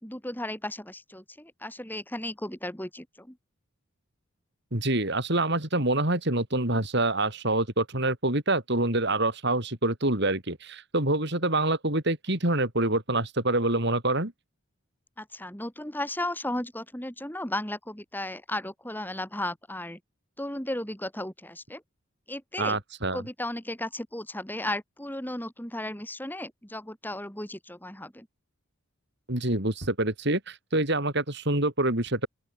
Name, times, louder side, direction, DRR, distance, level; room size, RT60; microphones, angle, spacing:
voice 1, 0.0-3.4 15.2-20.0 20.4-21.8 22.3-22.8 23.1-28.3, left 1 dB, 10° left, 3.7 m, -35 dB
voice 2, 4.7-14.3 22.6-23.2 29.3-32.3, right 2 dB, 55° right, 4.7 m, -26 dB
open air
head